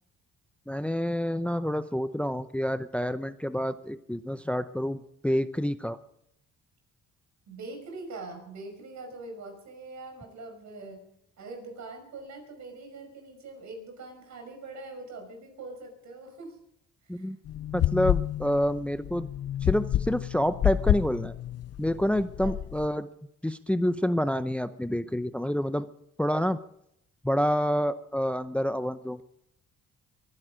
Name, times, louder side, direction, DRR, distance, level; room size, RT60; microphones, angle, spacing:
voice 1, 0.7-6.0 17.1-17.4 17.7-19.3 19.6-21.3 21.8-23.1 23.4-25.9 26.2-26.6 27.2-29.2, equal, 5° left, 12 dB, 0.7 m, -28 dB
voice 2, 7.5-11.0 11.4-16.6 17.0-17.3 22.4-22.5 22.9-23.0, right 3 dB, 65° right, 4 dB, 5.8 m, -43 dB
sound 1, 17.5-22.9, left 12 dB, 55° left, 0.5 m, -29 dB
23.0 x 11.0 x 5.1 m, 0.76 s
cardioid pair, 90°, 30 cm